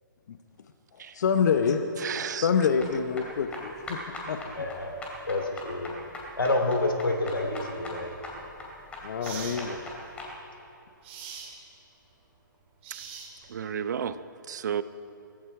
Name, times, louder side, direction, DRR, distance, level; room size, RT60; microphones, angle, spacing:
voice 1, 1.1-1.9 2.4-4.0 4.3-4.4 9.0-9.8, left 6 dB, 55° left, 7 dB, 0.9 m, -26 dB
voice 2, 2.0-2.7 13.5-14.2 14.5-14.8, right 8 dB, 55° right, 13 dB, 0.7 m, -32 dB
sound 1, 2.8-10.3, left 2 dB, 10° left, 2.4 m, -41 dB
voice 3, 4.5-4.9 5.3-5.9 6.4-8.1 9.2-9.5, left 2 dB, 90° left, 3 dB, 3.0 m, -28 dB
sound 2, 8.3-8.5 9.2-9.6 11.0-11.5 12.8-13.6, right 7 dB, 35° right, 2.7 m, -41 dB
17.5 x 15.0 x 4.8 m, 2.7 s
hypercardioid pair, 140°, 11 cm